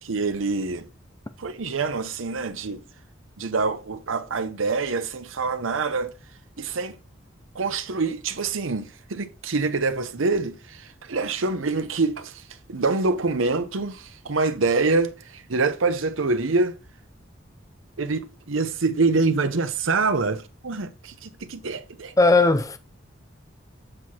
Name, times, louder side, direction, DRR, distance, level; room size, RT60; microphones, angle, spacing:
voice 1, 0.0-0.9 1.4-2.8 3.4-6.1 6.6-7.0 7.5-12.4 12.7-16.8 18.0-22.1, right 3 dB, 85° right, 0.8 m, -25 dB
voice 2, 22.2-22.8, left 3 dB, 15° left, 0.5 m, -17 dB
7.5 x 4.8 x 4.3 m
head